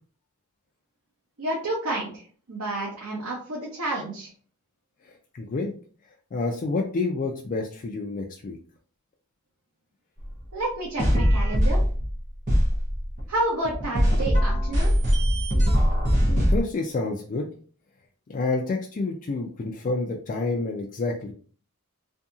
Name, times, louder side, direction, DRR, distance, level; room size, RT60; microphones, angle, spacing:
voice 1, 1.4-4.3 10.5-11.8 13.3-14.9, right 2 dB, 80° right, -3 dB, 0.8 m, -30 dB
voice 2, 5.0-5.7 6.3-8.6 16.3-17.5 18.3-21.3, left 3 dB, 35° left, 1 dB, 0.3 m, -29 dB
sound 1, 10.2-10.3 11.0-12.2 12.5-13.2 13.6-16.6, equal, 35° right, 0.8 m, -21 dB
2.7 x 2.7 x 2.3 m, 0.44 s
head